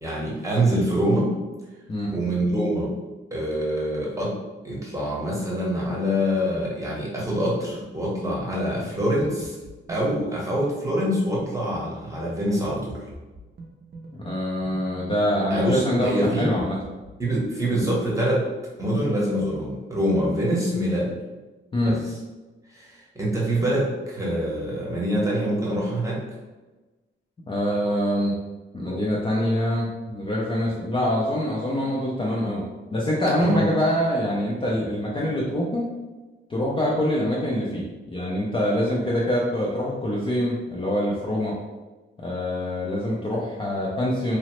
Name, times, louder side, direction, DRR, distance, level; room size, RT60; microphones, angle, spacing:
voice 1, 0.0-1.4 2.1-3.0 3.3-4.4 4.6-9.6 9.9-13.0 15.5-16.5 17.2-18.4 18.8-21.2 21.8-22.0 22.7-26.2 33.4-33.6, equal, 15° right, -6 dB, 0.8 m, -25 dB
sound 1, 6.5-17.5, right 2 dB, 45° right, 0.5 m, -44 dB
voice 2, 14.2-16.8 21.7-21.9 27.5-28.3 28.7-32.6 32.9-35.9 36.5-37.8 38.1-41.5 42.2-44.4, equal, 25° left, -4 dB, 0.4 m, -25 dB
2.9 x 2.0 x 2.9 m, 1.2 s
wide cardioid pair, 135°, 21 cm